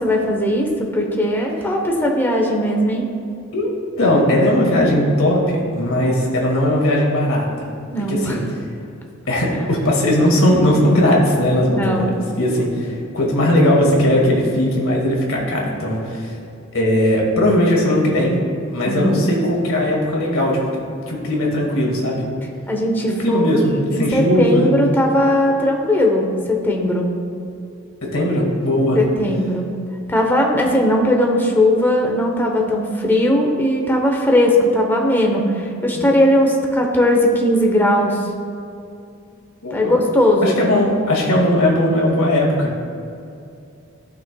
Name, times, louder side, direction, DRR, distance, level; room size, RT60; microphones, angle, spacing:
voice 1, 0.0-3.1 7.9-8.4 11.7-12.1 18.8-19.4 22.7-27.1 29.0-29.7 30.1-38.3 39.7-40.6, left 1 dB, 10° left, 0 dB, 0.8 m, -18 dB
voice 2, 4.0-7.7 8.1-8.4 9.3-16.3 16.7-18.4 18.7-20.7 21.1-22.3 23.2-23.7 24.0-24.7 28.0-29.0 35.9-36.1 39.6-39.9 40.4-42.7, left 1 dB, 90° left, -2 dB, 2.0 m, -18 dB
15.5 x 5.9 x 2.3 m, 2.5 s
head